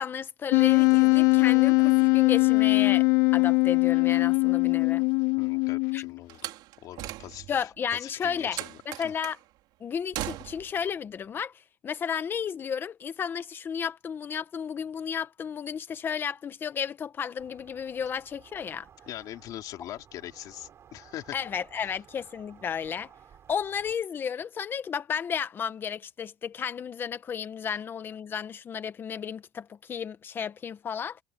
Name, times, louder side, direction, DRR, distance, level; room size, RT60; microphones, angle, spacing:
voice 1, 0.0-3.1 3.3-5.0 5.9-6.0 7.5-8.6 8.8-9.4 9.8-11.5 11.8-18.9 21.3-23.1 23.5-31.2, left 7 dB, 25° left, 1.0 m, -33 dB
Wind instrument woodwind instrument, 0.5-6.2, left 30 dB, 90° left, 0.6 m, -21 dB
voice 2, 5.4-6.6 6.8-9.1 19.1-21.4 21.8-22.0, left 13 dB, 45° left, 3.1 m, -42 dB
Slam, 6.3-7.7 8.5-9.4 10.1-10.8, right 16 dB, 50° right, 3.5 m, -38 dB
sound 1, 17.4-24.0, right 8 dB, 30° right, 7.5 m, -55 dB
cardioid pair, 165°, 9 cm